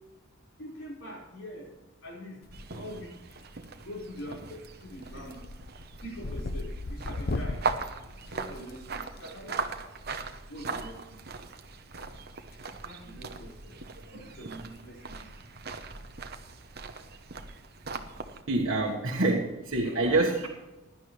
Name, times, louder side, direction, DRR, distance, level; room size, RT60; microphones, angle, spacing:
voice 1, 0.6-1.7 2.0-2.4 2.7-3.2 3.8-5.5 6.0-7.6 8.3-9.8 10.5-11.3 12.8-13.7 14.1-15.3, equal, 75° left, -3 dB, 5.3 m, -44 dB
sound 1, 2.4-3.0 3.3-3.8 4.2-4.5 4.8-9.2 10.6-10.7 11.9-12.7 13.0-13.2 13.8-13.9 14.1-14.2 14.6-14.8 15.1-15.2 16.7-17.0, left 2 dB, 50° left, 0.7 m, -37 dB
sound 2, 2.5-18.4, right 4 dB, 50° right, 1.0 m, -40 dB
voice 2, 18.5-20.5, right 2 dB, 70° right, -3 dB, 1.5 m, -26 dB
16.5 x 11.0 x 3.3 m, 1.1 s
head